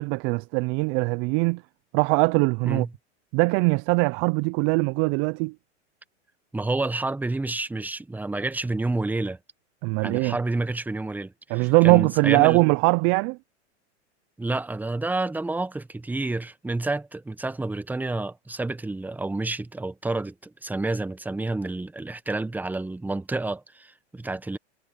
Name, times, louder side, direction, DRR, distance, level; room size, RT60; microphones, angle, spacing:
voice 1, 0.0-1.6 1.9-2.9 3.3-5.5 9.8-10.4 11.5-13.4, right 29 dB, 35° right, 0.4 m, -21 dB
voice 2, 6.5-9.4 10.0-12.6 14.4-24.6, right 2 dB, 5° right, 1.0 m, -29 dB
hypercardioid pair, 120°, 35 cm